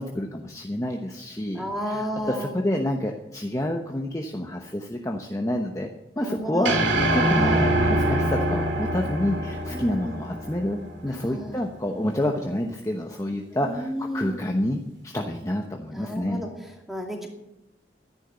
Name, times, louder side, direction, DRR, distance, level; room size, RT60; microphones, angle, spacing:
voice 1, 0.0-5.9 6.2-6.8 7.1-16.4, left 1 dB, 15° left, 2 dB, 0.9 m, -28 dB
voice 2, 1.5-2.5 6.2-6.8 7.2-7.7 9.7-10.2 11.1-11.6 13.6-14.4 15.9-16.5 16.9-17.3, equal, ahead, 0 dB, 2.5 m, -32 dB
sound 1, 6.7-11.0, right 1 dB, 80° right, 2.7 m, -24 dB
12.5 x 11.0 x 8.1 m, 0.89 s
head